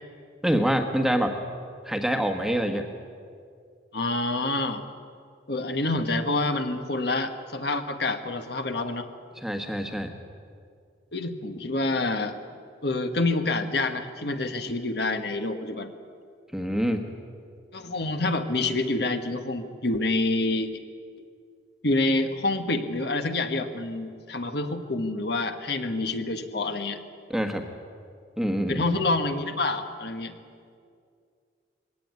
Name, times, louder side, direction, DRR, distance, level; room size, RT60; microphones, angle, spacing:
voice 1, 0.4-1.3 1.8-2.9 9.4-10.1 16.5-17.1 27.3-27.6 28.4-28.8, equal, ahead, 4 dB, 1.3 m, -25 dB
voice 2, 3.9-4.8 5.5-9.1 11.1-12.4 12.8-15.9 17.7-20.7 21.8-27.0 28.7-30.3, left 2 dB, 60° left, 7 dB, 1.4 m, -27 dB
22.0 x 17.5 x 9.5 m, 2.2 s
head